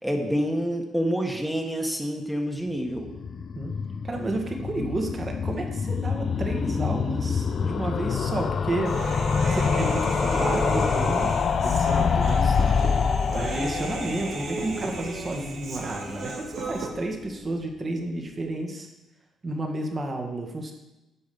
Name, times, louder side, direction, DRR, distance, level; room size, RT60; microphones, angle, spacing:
voice 1, 0.0-3.1, equal, 5° right, 2 dB, 1.6 m, -27 dB
sound 1, 2.9-15.9 16.2-16.3 16.5-16.6 16.8-16.9, left 6 dB, 50° left, 0.5 m, -26 dB
voice 2, 4.0-9.0 9.5-11.3 11.6-12.6 13.3-18.9 19.4-20.7, right 2 dB, 35° right, 2 dB, 1.9 m, -31 dB
Human voice, 8.8-16.9, right 3 dB, 55° right, 2.1 m, -34 dB
9.5 x 5.2 x 7.1 m, 0.98 s
cardioid pair, 90°, 0 cm